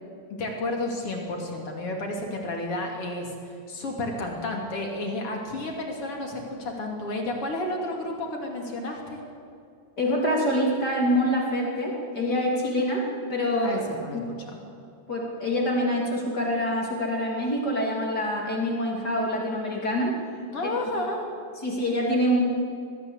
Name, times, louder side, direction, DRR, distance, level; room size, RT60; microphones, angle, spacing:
voice 1, 0.3-3.3 3.7-9.2 13.6-14.2 14.5-14.6 20.5-21.2, left 1 dB, 50° left, 1 dB, 3.6 m, -31 dB
voice 2, 10.0-13.0 13.3-13.8 14.1-14.3 15.1-20.1 20.6-20.7 21.6-22.4, equal, 35° left, -2 dB, 3.2 m, -25 dB
21.5 x 14.5 x 8.2 m, 2.5 s
omnidirectional pair, 3.4 m